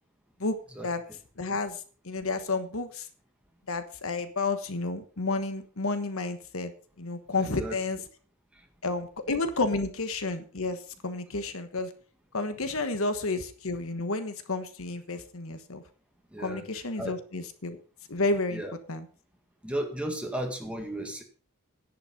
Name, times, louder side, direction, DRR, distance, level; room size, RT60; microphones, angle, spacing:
voice 1, 1.4-3.1 3.7-6.7 7.0-8.0 8.8-11.9 12.3-15.8 16.4-17.8 18.1-18.6 18.9-19.0, left 3 dB, 70° left, 9 dB, 1.3 m, -31 dB
voice 2, 7.4-7.8 8.5-8.6 16.3-16.6 17.0-17.2 18.5-18.8 19.6-21.2, right 1 dB, 5° right, 3 dB, 2.0 m, -34 dB
10.5 x 9.5 x 5.3 m, 0.39 s
head